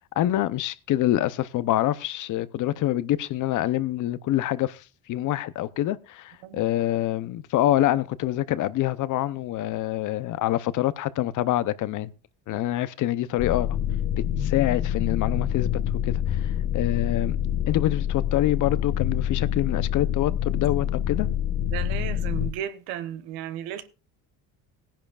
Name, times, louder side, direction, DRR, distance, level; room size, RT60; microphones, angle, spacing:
voice 1, 0.2-12.1 12.5-13.7 14.4-15.7 16.0-17.4 17.7-21.3, left 14 dB, 55° left, 0.7 m, -26 dB
sound 1, 13.4-22.5, left 10 dB, 75° left, 1.2 m, -26 dB
voice 2, 21.7-23.9, right 11 dB, 85° right, 1.2 m, -34 dB
18.5 x 10.5 x 2.4 m
cardioid pair, 110°, 36 cm